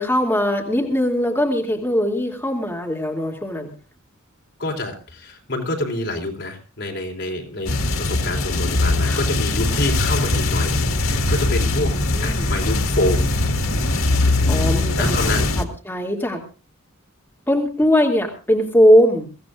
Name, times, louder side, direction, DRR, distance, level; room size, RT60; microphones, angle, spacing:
voice 1, 0.0-3.7 9.0-9.2 9.7-9.8 11.8-12.5 14.5-15.2 15.6-16.4 17.5-19.3, equal, 10° left, -1 dB, 2.6 m, -20 dB
voice 2, 4.6-11.9 12.2-13.3 14.9-15.5, left 1 dB, 55° left, 2 dB, 3.9 m, -27 dB
sound 1, 7.6-15.6, left 2 dB, 75° left, 2.0 m, -21 dB
24.0 x 16.0 x 2.5 m, 0.34 s
head